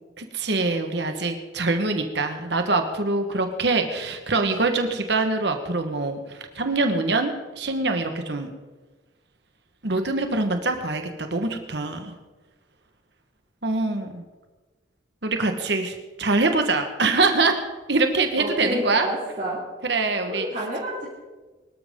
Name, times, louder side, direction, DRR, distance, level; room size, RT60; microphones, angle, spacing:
voice 1, 0.2-8.5 9.8-12.2 13.6-14.2 15.2-17.6 17.9-19.1 19.8-20.5, right 3 dB, 65° right, 6 dB, 1.5 m, -24 dB
voice 2, 18.3-19.6 20.3-21.1, equal, 40° right, -5 dB, 2.6 m, -29 dB
23.5 x 13.0 x 3.8 m, 1.2 s
head